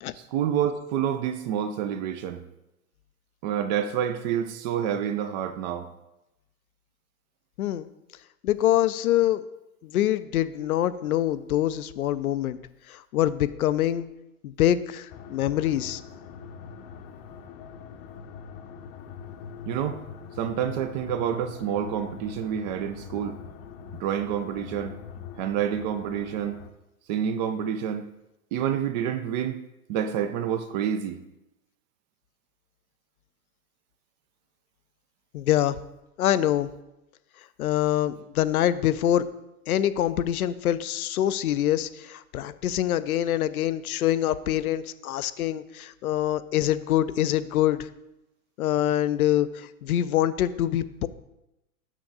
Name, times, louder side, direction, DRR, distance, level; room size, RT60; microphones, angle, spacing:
voice 1, 0.1-2.4 3.4-5.9 19.7-20.0 20.4-23.4 24.0-25.0 25.4-26.6 27.1-28.1 28.5-29.6 29.9-31.2, right 9 dB, 30° right, 0.4 m, -28 dB
voice 2, 8.4-9.4 9.8-12.6 12.9-14.1 14.4-16.0 35.3-35.8 36.2-36.7 37.6-39.2 39.7-47.9 48.6-51.1, left 12 dB, 75° left, 0.6 m, -25 dB
sound 1, 15.1-26.7, left 6 dB, 45° left, 0.7 m, -43 dB
6.3 x 5.9 x 3.8 m
hypercardioid pair, 100°, 44 cm